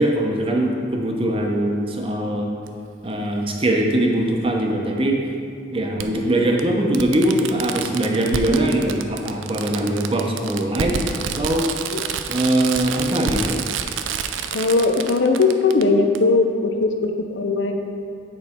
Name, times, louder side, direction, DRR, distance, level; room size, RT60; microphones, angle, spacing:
voice 1, 0.0-2.5 3.0-5.2 5.7-11.6 12.3-13.6, right 1 dB, 30° right, 0 dB, 0.8 m, -21 dB
Fireworks, 2.7-2.8 4.3-4.4 6.0-6.1 6.6-6.7 6.9-15.8 16.1-16.2, right 7 dB, 90° right, 0.4 m, -28 dB
voice 2, 14.5-17.7, left 3 dB, 70° left, 4 dB, 0.6 m, -19 dB
8.6 x 4.1 x 4.4 m, 2.3 s
head